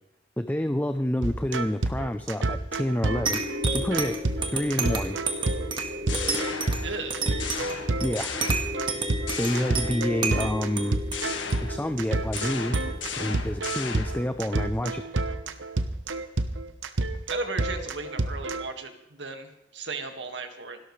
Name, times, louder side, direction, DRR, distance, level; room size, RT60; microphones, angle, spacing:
voice 1, 0.4-4.2 4.5-5.2 8.0-8.3 9.3-11.0 11.6-12.8 13.2-15.0, left 1 dB, 10° left, 9 dB, 0.5 m, -28 dB
sound 1, 1.2-18.7, right 2 dB, 90° right, 1.1 m, -29 dB
sound 2, 3.3-14.3, right 2 dB, 25° right, 1.7 m, -32 dB
sound 3, 5.8-7.1 7.4-8.9 9.3-10.3 11.1-14.3, left 6 dB, 85° left, 1.7 m, -36 dB
voice 2, 6.8-7.2 17.3-20.8, right 4 dB, 75° right, 5 dB, 1.9 m, -36 dB
28.5 x 12.5 x 3.3 m, 0.85 s
head